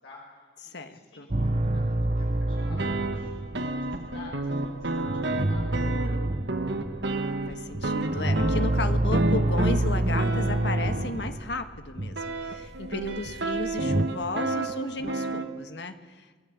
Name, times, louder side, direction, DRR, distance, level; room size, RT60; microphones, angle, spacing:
voice 1, 0.0-6.1, left 3 dB, 90° left, -3 dB, 5.0 m, -50 dB
voice 2, 0.6-1.3 7.2-16.4, left 2 dB, 65° left, 8 dB, 1.5 m, -34 dB
sound 1, 1.3-14.1, right 1 dB, 40° right, 0.9 m, -28 dB
sound 2, 2.6-11.4 12.2-15.4, right 2 dB, 65° right, 1.6 m, -31 dB
28.5 x 19.0 x 8.5 m, 1.5 s
head